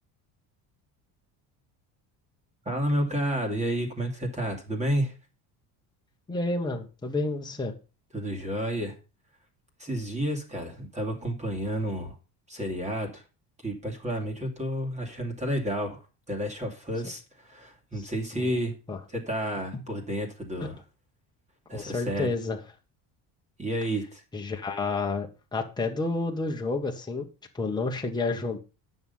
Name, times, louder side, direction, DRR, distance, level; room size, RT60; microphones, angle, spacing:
voice 1, 2.7-5.1 8.1-9.0 9.8-12.1 12.5-13.2 13.6-16.0 16.3-18.7 19.1-20.8 21.7-22.3 23.6-24.2, equal, 15° right, 2 dB, 2.4 m, -30 dB
voice 2, 6.3-7.7 18.0-18.5 18.9-19.0 19.7-19.8 20.6-20.7 21.7-22.6 24.3-27.2 27.5-28.6, left 3 dB, 10° left, 1 dB, 1.4 m, -30 dB
9.6 x 6.4 x 5.5 m, 0.32 s
cardioid pair, 145°, 40 cm